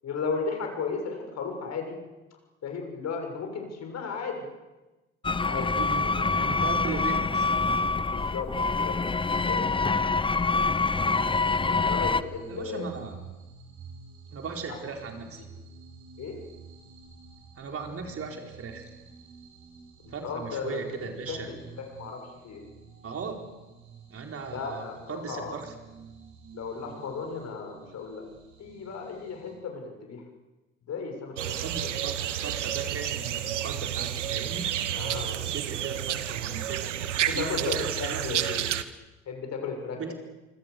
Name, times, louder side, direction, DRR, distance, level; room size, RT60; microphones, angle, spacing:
voice 1, 0.0-2.0 2.6-4.4 5.4-5.7 8.1-9.0 9.5-9.8 11.7-12.9 16.2-16.4 20.1-20.8 21.3-22.6 24.5-25.5 26.5-28.3 28.6-30.2 30.8-31.9 34.9-35.4 37.3-38.7 39.3-40.1, left 5 dB, 45° left, 3 dB, 7.0 m, -35 dB
sound 1, 5.2-12.2, left 3 dB, 15° left, 0.8 m, -26 dB
voice 2, 5.5-7.8 11.0-11.4 12.5-13.2 14.3-15.4 17.6-18.9 20.1-21.5 23.0-23.4 24.1-25.7 31.3-34.7 35.4-38.5 39.9-40.1, right 5 dB, 40° right, 3 dB, 4.4 m, -38 dB
sound 2, 11.1-29.6, right 5 dB, 60° right, 7.4 m, -50 dB
sound 3, 31.4-38.8, right 11 dB, 80° right, 1.1 m, -30 dB
27.5 x 25.5 x 6.8 m, 1.1 s
figure-of-eight pair, 55°, 35 cm